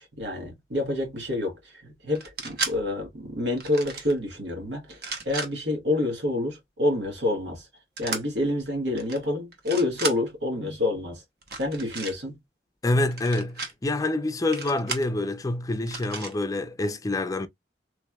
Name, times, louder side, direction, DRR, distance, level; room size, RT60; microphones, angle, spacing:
voice 1, 0.0-5.0 5.2-7.7 8.0-11.2 11.6-12.4, left 2 dB, 85° right, 1.8 m, -28 dB
sound 1, 2.1-2.7 3.6-4.1 4.9-5.5 8.0-8.2 8.9-9.2 9.5-10.2 11.4-12.1 13.1-13.7 14.5-15.1 15.9-16.3, right 4 dB, 60° right, 0.9 m, -33 dB
voice 2, 12.8-17.5, left 2 dB, 20° left, 0.4 m, -27 dB
3.4 x 3.1 x 2.3 m
head